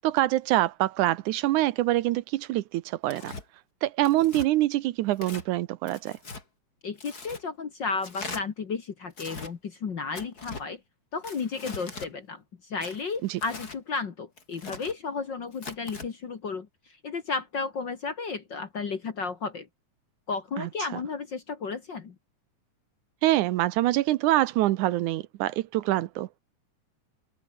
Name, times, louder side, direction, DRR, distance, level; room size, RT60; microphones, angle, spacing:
voice 1, 0.0-3.3 3.8-6.2 13.2-13.4 20.6-21.0 23.2-26.3, right 15 dB, 75° right, 2.1 m, -25 dB
Tearing, 3.1-3.4 4.0-4.5 5.1-5.5 5.9-6.4 7.0-7.4 8.0-8.4 9.1-9.5 10.1-10.7 11.2-12.1 12.8-13.8 14.4-14.9 15.5-16.1, left 3 dB, 30° left, 4.0 m, -41 dB
voice 2, 6.8-10.8 11.1-16.7 17.0-19.7 20.3-22.2, left 4 dB, 45° left, 1.8 m, -33 dB
omnidirectional pair, 3.7 m